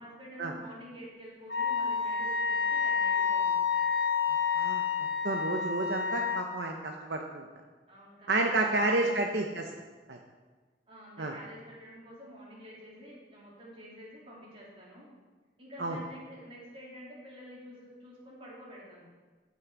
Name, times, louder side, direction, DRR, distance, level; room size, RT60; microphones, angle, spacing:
voice 1, 0.0-3.6 5.5-5.9 7.9-9.2 10.9-15.1 15.6-19.1, equal, 30° right, -6 dB, 3.2 m, -49 dB
Wind instrument woodwind instrument, 1.5-6.4, left 6 dB, 80° left, 1.1 m, -29 dB
voice 2, 5.2-7.5 8.3-9.7 10.1-10.2 11.2-11.3 15.8-16.0, right 2 dB, 70° right, 2 dB, 0.8 m, -30 dB
13.0 x 6.4 x 4.7 m, 1.3 s
head